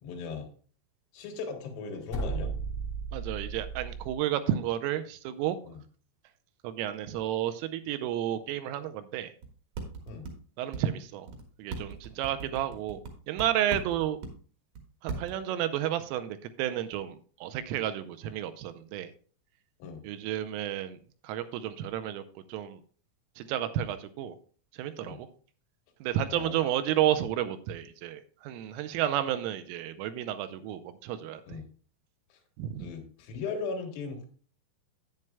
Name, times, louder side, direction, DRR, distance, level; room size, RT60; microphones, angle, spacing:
voice 1, 0.0-0.5 1.1-2.5 5.6-5.8 10.1-10.3 19.8-20.0 25.0-25.2 26.3-26.6 31.5-31.6 32.3-32.4 32.8-34.3, left 4 dB, 80° left, 3 dB, 4.1 m, -38 dB
sound 1, 2.1-4.2, right 4 dB, 65° left, 1.9 m, -35 dB
voice 2, 3.1-5.6 6.6-9.3 10.6-11.3 11.6-13.0 13.3-14.2 15.0-19.1 20.0-21.0 21.2-22.2 22.5-22.8 23.4-24.4 24.8-25.3 26.0-31.4 32.6-32.9, right 11 dB, 85° right, 10 dB, 3.1 m, -31 dB
sound 2, 9.4-9.5 9.8-10.3 10.7-10.8 11.3-11.4 11.7-13.1 13.4-14.3 14.8-14.9 15.1-15.3, right 4 dB, 65° right, 2.3 m, -37 dB
10.5 x 9.2 x 2.2 m, 0.42 s
omnidirectional pair, 5.9 m